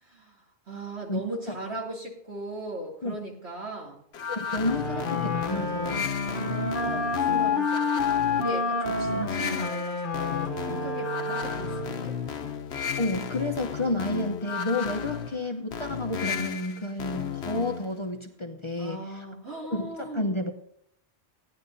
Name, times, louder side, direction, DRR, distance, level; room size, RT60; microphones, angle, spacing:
voice 1, 0.0-4.0 6.2-12.4 18.8-20.3, right 2 dB, 70° right, -1 dB, 3.0 m, -38 dB
sound 1, 4.1-17.9, left 7 dB, 70° left, 1.1 m, -34 dB
voice 2, 4.3-6.1 13.0-19.0 19.7-20.5, left 2 dB, 30° left, 3 dB, 0.8 m, -30 dB
Wind instrument woodwind instrument, 4.6-12.1, left 4 dB, 50° left, 1.1 m, -29 dB
16.5 x 10.5 x 2.7 m, 0.73 s
omnidirectional pair, 1.1 m